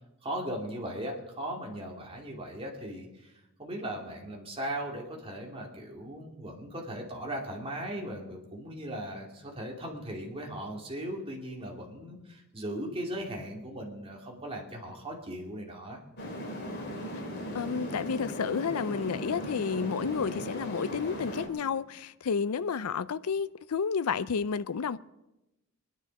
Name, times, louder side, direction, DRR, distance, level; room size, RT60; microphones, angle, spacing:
voice 1, 0.2-3.3 3.6-16.0, right 1 dB, 25° right, 2.6 m, -38 dB
sound 1, 16.2-21.5, equal, 50° left, 3.0 m, -37 dB
voice 2, 17.5-25.0, left 6 dB, 80° left, 0.5 m, -31 dB
23.0 x 10.5 x 5.3 m
head